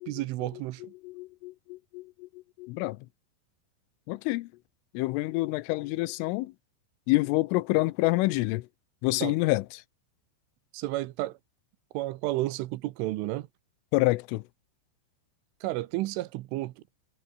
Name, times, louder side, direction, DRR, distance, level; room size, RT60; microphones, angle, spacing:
voice 1, 0.1-0.9 9.2-9.4 10.7-11.4 11.9-13.5 15.6-16.8, right 17 dB, 80° right, 3.4 m, -32 dB
voice 2, 1.0-3.0 4.1-4.5 4.9-6.5 7.1-8.7 9.0-9.8 13.9-14.4, left 20 dB, 85° left, 3.3 m, -27 dB
omnidirectional pair, 5.7 m